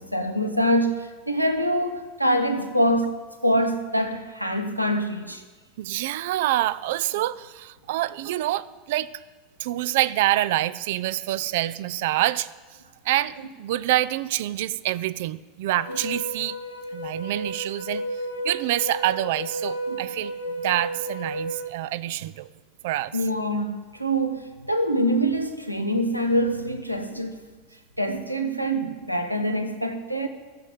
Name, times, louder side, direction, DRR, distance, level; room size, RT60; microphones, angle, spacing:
voice 1, 0.0-5.4 19.9-20.0 23.1-27.4 28.0-30.3, equal, 90° right, 7 dB, 1.0 m, -25 dB
voice 2, 5.8-9.1 9.6-12.5 13.0-16.6 16.9-22.5 22.8-23.2, right 15 dB, 55° right, 18 dB, 0.4 m, -26 dB
sound 1, 15.7-21.7, right 1 dB, 85° left, 2.6 m, -33 dB
13.0 x 7.6 x 9.3 m, 1.3 s
figure-of-eight pair, 80°, 0 cm